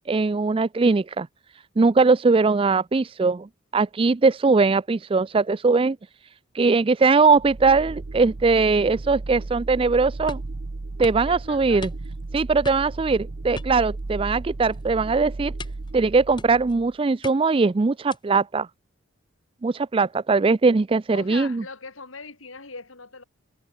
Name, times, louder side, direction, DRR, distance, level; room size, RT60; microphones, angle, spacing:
voice 1, 0.1-1.3 1.8-3.5 3.7-6.0 6.5-10.4 11.0-11.9 12.3-15.5 15.9-18.7 19.6-21.6, right 4 dB, 25° right, 0.4 m, -20 dB
sound 1, 7.3-16.9, right 2 dB, 50° right, 0.7 m, -35 dB
sound 2, 10.3-10.6 11.0-11.3 11.8-12.3 12.6-13.0 13.6-14.3 14.6-14.9 15.6-15.9 16.4-16.8 17.2-17.6 18.1-18.4, left 3 dB, 20° left, 1.4 m, -40 dB
voice 2, 11.2-11.8 21.1-23.2, left 4 dB, 75° left, 3.3 m, -40 dB
head